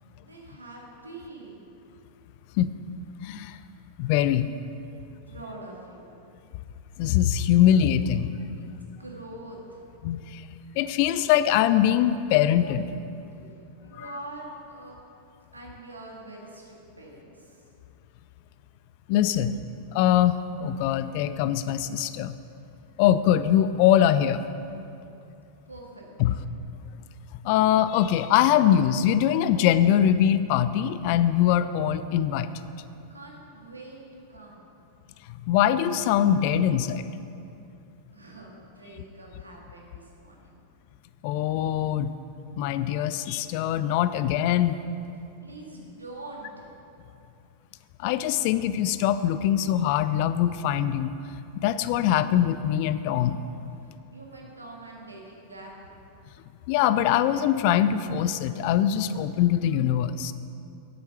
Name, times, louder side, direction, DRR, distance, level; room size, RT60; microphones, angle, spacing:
voice 1, 0.2-1.6 5.3-6.1 8.6-9.8 13.1-15.0 15.5-17.6 25.7-26.4 33.1-34.7 38.1-40.6 45.4-46.8 53.8-55.9, right 2 dB, 80° right, -2 dB, 2.0 m, -44 dB
voice 2, 3.2-3.6 4.0-4.5 7.0-8.3 10.0-10.4 10.8-12.9 14.0-14.1 19.1-19.6 19.9-22.4 23.0-24.4 26.2-26.3 27.4-32.5 35.5-37.1 41.2-42.1 42.6-44.8 48.0-51.1 51.6-53.4 56.7-60.3, left 10 dB, 45° left, 13 dB, 0.4 m, -22 dB
9.4 x 8.1 x 5.8 m, 2.7 s
figure-of-eight pair, 90°, 0 cm